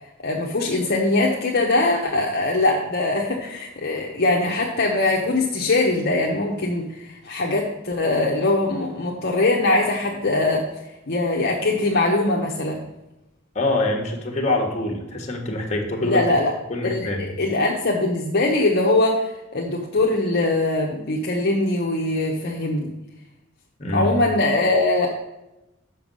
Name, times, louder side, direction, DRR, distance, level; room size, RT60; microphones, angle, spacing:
voice 1, 0.2-10.7 11.1-12.8 16.0-16.5 16.8-19.2 19.5-22.9 23.9-25.1, left 2 dB, 50° left, -2 dB, 0.8 m, -22 dB
voice 2, 13.5-16.2 16.7-17.2 23.8-24.1, left 2 dB, 35° left, 0 dB, 1.3 m, -24 dB
6.8 x 6.0 x 5.4 m, 0.96 s
head